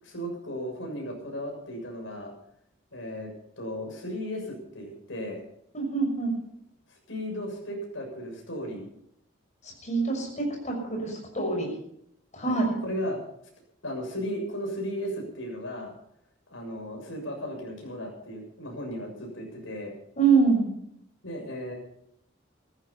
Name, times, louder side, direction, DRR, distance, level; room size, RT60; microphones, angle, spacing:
voice 1, 0.0-2.3 2.9-3.3 3.6-5.4 6.9-8.9 12.4-13.2 13.8-15.9 16.5-19.9 21.2-21.8, equal, 75° left, 1 dB, 6.9 m, -35 dB
voice 2, 5.7-6.3 9.6-11.7 12.3-12.8 20.2-20.7, right 4 dB, 35° left, 1 dB, 6.3 m, -25 dB
16.0 x 14.0 x 5.8 m, 0.72 s
head